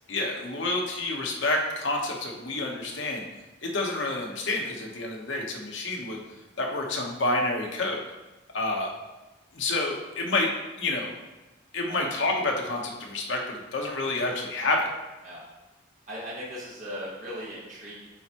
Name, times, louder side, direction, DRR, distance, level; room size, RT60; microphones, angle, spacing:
voice 1, 0.1-3.2 3.6-6.2 6.6-8.0 8.5-8.9 9.5-10.5 10.8-11.1 11.7-14.9, left 2 dB, 65° left, 0 dB, 1.1 m, -28 dB
voice 2, 16.1-18.1, equal, 40° right, -7 dB, 1.5 m, -38 dB
8.7 x 4.4 x 3.0 m, 1.1 s
head